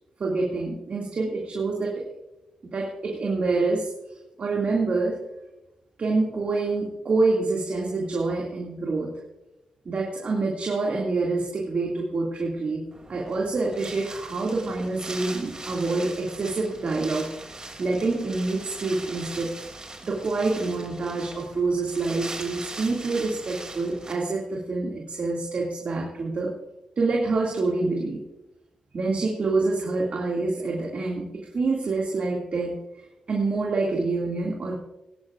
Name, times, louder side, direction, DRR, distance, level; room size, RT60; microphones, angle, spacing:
voice 1, 0.2-2.0 2.6-3.9 4.4-5.2 6.0-9.1 9.9-12.8 13.1-17.3 17.8-19.5 20.0-26.5 27.0-28.2 28.9-34.8, right 3 dB, 55° right, -2 dB, 2.2 m, -26 dB
Wind, 12.9-24.1, right 2 dB, 30° right, 2.6 m, -40 dB
19.5 x 10.5 x 2.5 m, 0.96 s
supercardioid pair, 50°, 3 cm